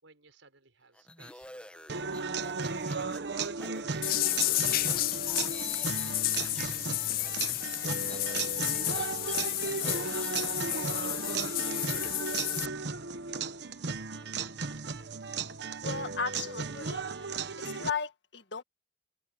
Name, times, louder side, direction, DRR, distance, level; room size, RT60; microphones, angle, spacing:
voice 1, 0.0-3.2 3.7-13.9, right 3 dB, 90° right, 6.5 m, -59 dB
sound 1, 0.9-6.8 7.1-11.8, left 1 dB, 5° left, 1.4 m, -50 dB
sound 2, 1.9-17.9, right 4 dB, 60° right, 1.1 m, -35 dB
sound 3, 4.0-12.7, left 17 dB, 50° left, 0.3 m, -31 dB
voice 2, 15.8-17.0 17.6-18.6, left 5 dB, 65° left, 1.9 m, -35 dB
open air
head